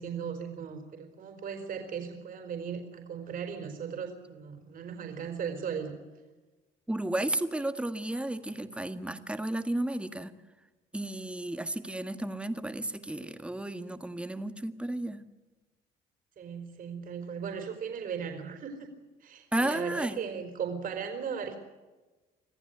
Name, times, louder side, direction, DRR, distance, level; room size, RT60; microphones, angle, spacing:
voice 1, 0.0-6.0 16.4-18.9 19.2-21.6, right 7 dB, 55° right, 5 dB, 4.2 m, -37 dB
voice 2, 6.9-10.3 10.9-15.2 19.5-20.2, right 1 dB, 5° right, 9 dB, 1.7 m, -33 dB
25.5 x 15.0 x 9.3 m, 1.2 s
cardioid pair, 110°, 17 cm